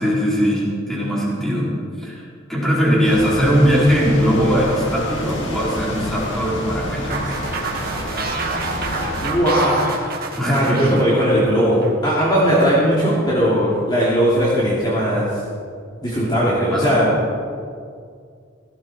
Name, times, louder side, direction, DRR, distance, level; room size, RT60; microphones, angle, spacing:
voice 1, 0.0-2.2 2.5-7.4 10.4-11.0 16.7-16.9, equal, ahead, -7 dB, 4.3 m, -20 dB
sound 1, 3.0-9.3, left 1 dB, 70° left, 2.8 m, -29 dB
sound 2, 7.1-12.2, right 4 dB, 50° right, 2.2 m, -29 dB
voice 2, 9.2-10.0 10.5-15.3 16.0-17.1, equal, 20° left, -8 dB, 3.1 m, -18 dB
17.5 x 16.5 x 4.6 m, 2.2 s
head